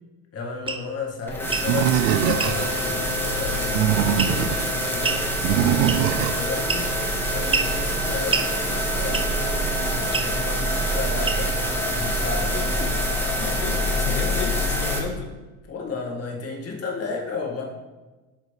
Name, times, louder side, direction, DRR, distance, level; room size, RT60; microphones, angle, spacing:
voice 1, 0.3-5.2 5.7-7.0 7.3-11.6 11.9-12.6 15.7-17.6, left 4 dB, 35° left, -1 dB, 1.9 m, -33 dB
sound 1, 0.7-0.8 1.4-1.7 2.4-2.6 4.2-4.5 5.0-5.2 5.9-6.2 6.7-7.0 7.5-7.7 8.3-8.5 9.1-9.4 10.1-10.3 11.2-11.6, right 4 dB, 15° right, 0.5 m, -26 dB
sound 2, 1.3-15.0, equal, 5° left, 1.4 m, -25 dB
Animal, 1.7-2.8 3.6-4.6 5.4-6.4, right 11 dB, 70° right, 0.5 m, -22 dB
voice 2, 12.5-12.9 13.4-15.3, left 4 dB, 90° left, 4 dB, 0.9 m, -32 dB
8.6 x 4.8 x 3.3 m, 1.2 s
supercardioid pair, 95°, 41 cm